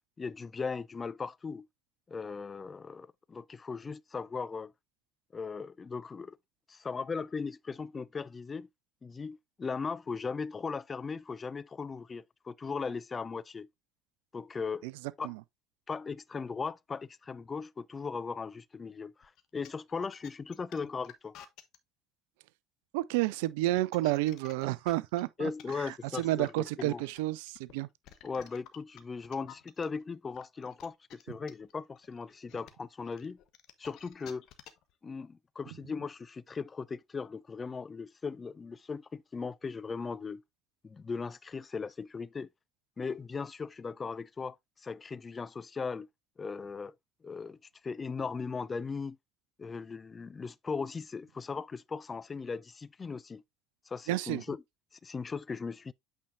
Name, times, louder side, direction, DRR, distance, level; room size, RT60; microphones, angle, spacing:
voice 1, 0.2-1.7 2.1-4.7 5.3-6.4 6.7-8.7 9.0-13.7 14.3-14.9 15.2-15.3 15.9-21.3 25.4-27.0 28.2-33.4 33.8-34.4 35.0-40.4 40.8-42.5 43.0-44.6 44.8-46.1 46.4-46.9 47.2-47.6 47.8-49.2 49.6-53.4 53.9-54.6 55.0-55.9, left 5 dB, 30° left, 0.4 m, -38 dB
sound 1, 19.2-21.8 23.6-29.8 30.3-34.9, left 11 dB, 60° left, 1.0 m, -52 dB
voice 2, 22.9-25.5 25.8-27.9 54.1-54.4, right 17 dB, 70° right, 0.5 m, -30 dB
8.4 x 4.4 x 2.6 m
hypercardioid pair, 65°, 0 cm